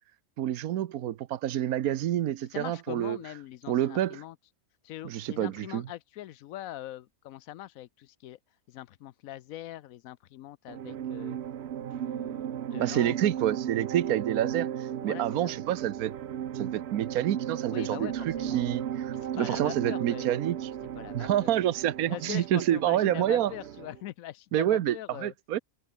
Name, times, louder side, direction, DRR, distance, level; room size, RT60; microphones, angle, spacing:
voice 1, 0.4-3.2 3.7-4.2 5.0-5.8 12.8-16.2 16.5-20.7 21.1-23.5 24.5-25.6, right 12 dB, 80° right, 1.3 m, -28 dB
voice 2, 2.5-4.3 4.8-8.4 8.7-11.4 11.8-13.6 15.0-15.5 17.7-18.6 19.1-20.4 20.9-21.5 22.1-25.3, left 14 dB, 75° left, 1.0 m, -42 dB
sound 1, 10.7-24.0, right 10 dB, 55° right, 0.9 m, -35 dB
omnidirectional pair, 1.5 m